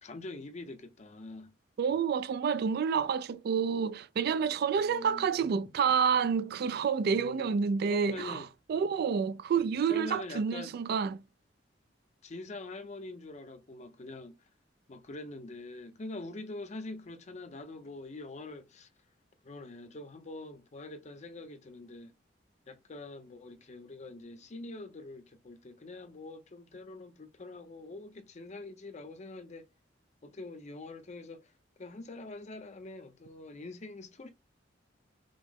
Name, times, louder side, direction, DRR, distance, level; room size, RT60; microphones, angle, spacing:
voice 1, 0.0-1.5 4.8-5.3 7.0-7.5 7.9-8.5 9.9-10.7 12.2-14.4 14.9-18.9 19.4-22.1 22.7-29.7 30.2-31.5 31.8-34.3, left 2 dB, 40° left, 0.6 m, -44 dB
voice 2, 1.8-8.4 8.7-11.2, right 6 dB, 55° right, 0.3 m, -29 dB
5.2 x 2.0 x 3.5 m
head